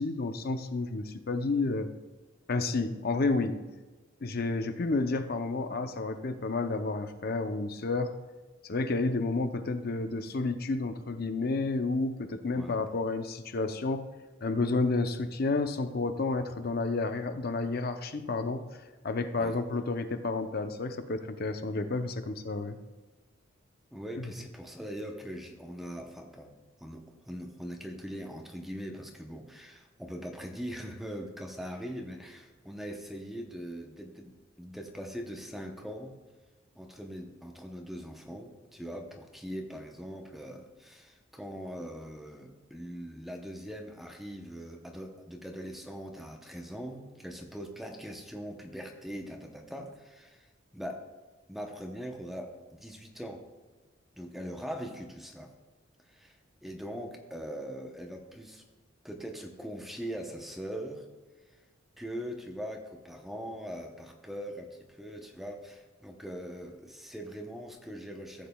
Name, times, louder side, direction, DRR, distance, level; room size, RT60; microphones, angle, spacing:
voice 1, 0.0-1.9 2.5-3.6 4.2-8.1 8.7-14.1 14.4-18.6 19.0-22.8 24.2-24.3, left 3 dB, 50° left, 8 dB, 0.6 m, -30 dB
voice 2, 23.9-26.5 26.8-36.1 36.7-51.1 51.5-53.5 54.1-55.5 56.0-58.6 59.0-61.1 61.5-61.6 62.0-68.5, equal, ahead, 2 dB, 0.8 m, -41 dB
15.5 x 7.4 x 2.3 m, 1.2 s
head